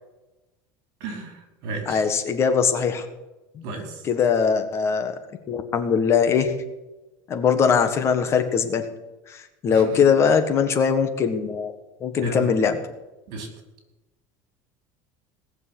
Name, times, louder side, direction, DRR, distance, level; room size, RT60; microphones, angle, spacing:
voice 1, 1.0-2.0 3.6-4.1 9.7-10.1 12.2-12.5 13.3-13.5, right 2 dB, 60° right, 4 dB, 4.7 m, -33 dB
voice 2, 1.9-3.0 3.5-3.6 4.0-5.1 5.5-6.5 7.3-8.8 9.3-11.7 12.0-12.7, left 6 dB, 30° left, 8 dB, 1.5 m, -21 dB
18.5 x 6.9 x 8.5 m, 1.0 s
cardioid pair, 150°, 8 cm